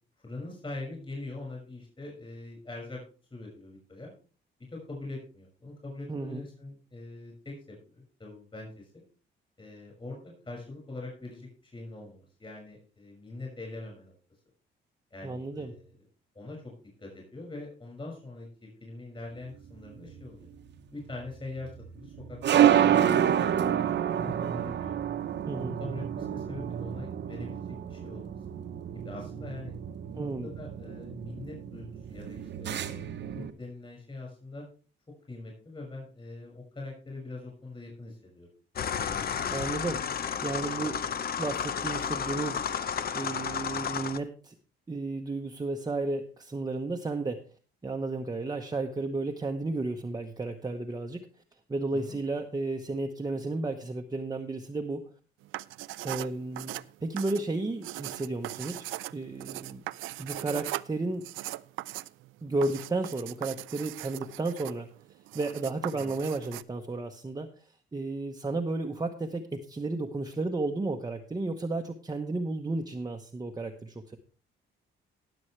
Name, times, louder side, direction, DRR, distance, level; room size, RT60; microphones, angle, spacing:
voice 1, 0.2-3.0 3.3-4.1 4.7-8.9 9.6-14.1 15.1-16.0 16.3-16.7 17.0-20.5 20.9-21.7 22.0-23.8 24.2-24.9 25.6-27.6 27.9-28.3 28.9-29.7 30.1-34.7 35.3-38.5 51.9-52.2 65.9-66.1, left 2 dB, 25° left, 0 dB, 6.2 m, -43 dB
voice 2, 6.1-6.4 15.2-15.7 25.5-25.8 30.1-30.5 39.5-41.0 41.4-42.6 43.1-44.5 44.9-47.4 47.8-51.3 51.7-55.0 56.0-56.7 57.0-59.8 60.2-61.3 62.4-64.9 65.3-67.5 67.9-74.2, right 2 dB, 20° right, 2 dB, 1.0 m, -33 dB
sound 1, 19.5-33.5, right 10 dB, 65° right, 1.0 m, -29 dB
sound 2, 38.8-44.2, left 7 dB, 50° left, 0.8 m, -32 dB
sound 3, 55.4-66.6, right 16 dB, 85° right, 0.4 m, -39 dB
19.0 x 7.0 x 3.3 m, 0.37 s
cardioid pair, 90°, 20 cm